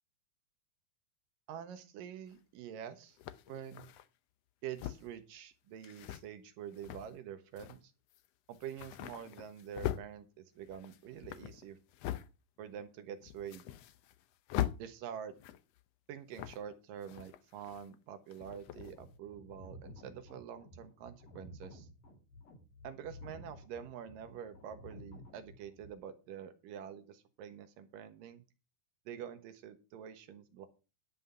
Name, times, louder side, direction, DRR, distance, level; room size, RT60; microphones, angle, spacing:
voice 1, 1.5-3.2 3.5-3.9 4.6-7.9 8.5-11.8 12.6-13.6 14.8-15.3 16.1-21.9 22.8-28.4 29.1-30.7, right 9 dB, 85° right, 9 dB, 2.9 m, -46 dB
sound 1, 2.3-2.4 3.2-4.1 4.7-5.2 5.8-6.2 6.7-7.2 7.5-7.8 8.1-8.3 8.5-10.0 10.6-12.3 12.7-12.8 13.2-14.2 14.5-14.8 15.3-15.8 16.3-16.7 17.0-18.0 18.3-19.0, left 12 dB, 90° left, 1.4 m, -41 dB
sound 2, 18.7-25.9, left 1 dB, 70° left, 5.0 m, -53 dB
11.0 x 5.7 x 6.9 m, 0.31 s
omnidirectional pair, 3.8 m